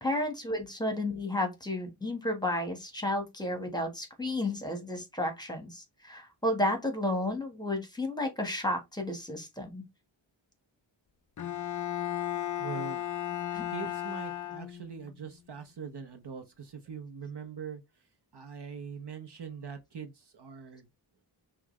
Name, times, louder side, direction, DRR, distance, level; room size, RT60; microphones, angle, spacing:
voice 1, 0.0-9.8 13.5-13.9, left 1 dB, 10° left, 1.3 m, -32 dB
Bowed string instrument, 11.4-15.1, left 12 dB, 40° left, 0.4 m, -35 dB
voice 2, 12.6-13.0 13.7-17.8 18.3-20.9, right 6 dB, 60° right, 0.9 m, -42 dB
5.7 x 2.4 x 3.1 m
wide cardioid pair, 80°, 47 cm